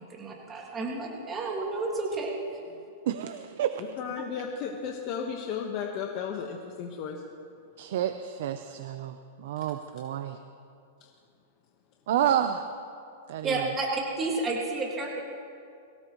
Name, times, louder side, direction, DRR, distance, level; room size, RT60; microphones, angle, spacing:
voice 1, 0.1-2.4 13.4-15.2, right 3 dB, 15° right, -2 dB, 2.0 m, -31 dB
voice 2, 3.1-3.7 7.8-10.4 12.1-12.7 13.3-13.7, right 10 dB, 65° right, 9 dB, 0.7 m, -29 dB
voice 3, 3.8-7.2, left 7 dB, 40° left, 1 dB, 1.3 m, -34 dB
23.0 x 17.0 x 3.2 m, 2.5 s
supercardioid pair, 150°, 0 cm